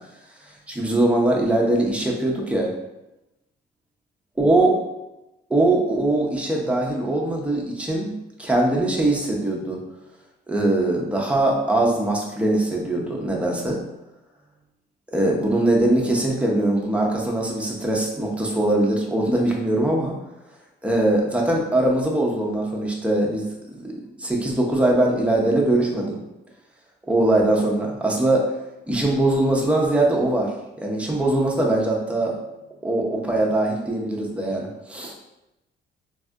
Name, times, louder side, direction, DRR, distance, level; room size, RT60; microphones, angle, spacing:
voice 1, 0.7-2.7 4.4-4.8 5.5-8.1 8.4-9.8 10.5-13.8 15.1-20.2 20.8-23.5 23.8-23.9 24.2-26.2 27.1-28.5 28.9-30.5 30.8-32.4 32.8-35.1, right 1 dB, 5° right, -1 dB, 0.6 m, -21 dB
3.2 x 2.6 x 2.4 m, 0.95 s
cardioid pair, 90°, 20 cm